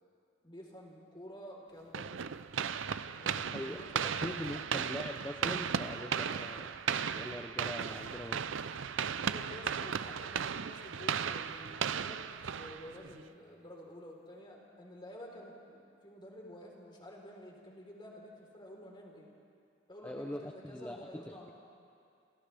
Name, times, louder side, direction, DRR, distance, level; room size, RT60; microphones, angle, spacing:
voice 1, 0.4-2.2 3.2-4.8 9.1-12.2 12.5-19.3 19.9-21.5, left 1 dB, 25° left, -2 dB, 4.0 m, -50 dB
sound 1, 1.9-13.2, right 7 dB, 70° right, 0.5 m, -36 dB
voice 2, 3.4-6.7 7.1-8.6 20.0-21.5, left 1 dB, 10° left, 5 dB, 0.7 m, -42 dB
29.0 x 26.5 x 3.5 m, 2.4 s
head